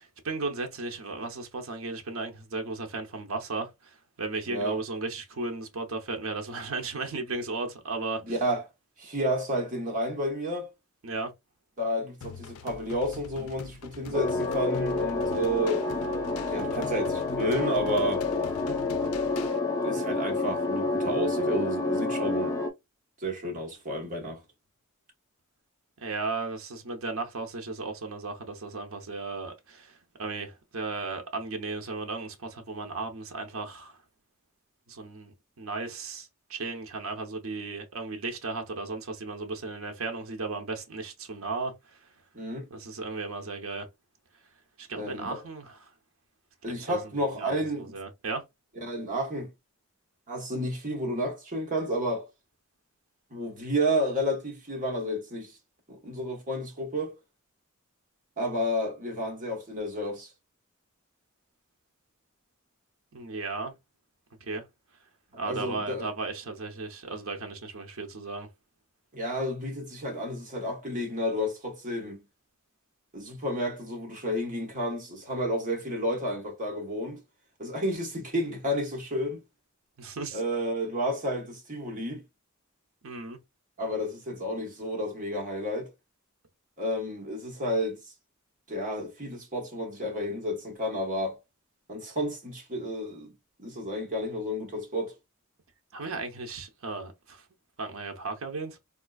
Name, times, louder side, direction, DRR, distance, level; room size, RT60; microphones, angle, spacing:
voice 1, 0.0-8.2 11.0-11.3 26.0-34.0 34.9-42.1 42.7-43.9 44.8-45.9 46.6-48.4 63.1-63.7 64.4-64.6 65.4-68.5 80.0-80.4 83.0-83.4 95.9-97.5 97.8-98.8, right 3 dB, 70° right, 0.7 m, -35 dB
voice 2, 4.5-4.8 8.2-8.6 9.0-10.7 11.8-15.9 16.5-18.2 19.8-22.5 23.2-24.4 42.3-42.7 44.9-45.4 46.6-47.9 48.8-49.5 50.3-52.3 53.3-55.6 55.9-57.2 58.4-60.3 65.4-66.1 69.1-72.2 73.1-77.2 77.6-79.4 80.3-82.2 83.8-85.9 86.8-88.0 88.7-91.4 91.9-93.3 93.6-95.1, equal, 40° right, 1.1 m, -31 dB
sound 1, 12.2-19.6, left 7 dB, 85° left, 0.4 m, -44 dB
sound 2, 14.1-22.7, left 3 dB, 15° left, 0.5 m, -29 dB
3.6 x 2.4 x 2.2 m
head